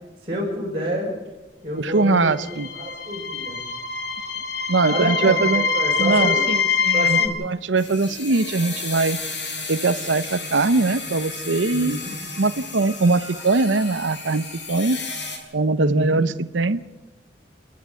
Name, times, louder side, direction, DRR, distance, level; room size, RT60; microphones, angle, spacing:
voice 1, 0.2-1.1 1.6-2.4 2.7-3.6 4.9-6.4 6.9-7.4 11.7-12.1 15.7-16.2, equal, 30° right, -7 dB, 5.7 m, -28 dB
voice 2, 1.7-2.7 4.7-5.6 6.0-9.2 9.7-12.0 12.4-15.0 15.5-16.8, right 3 dB, 80° right, 14 dB, 0.8 m, -21 dB
sound 1, 2.4-7.3, left 5 dB, 55° left, 2.3 m, -24 dB
sound 2, 7.8-15.4, left 3 dB, 75° left, 5.7 m, -33 dB
29.0 x 10.5 x 9.4 m, 1.1 s
head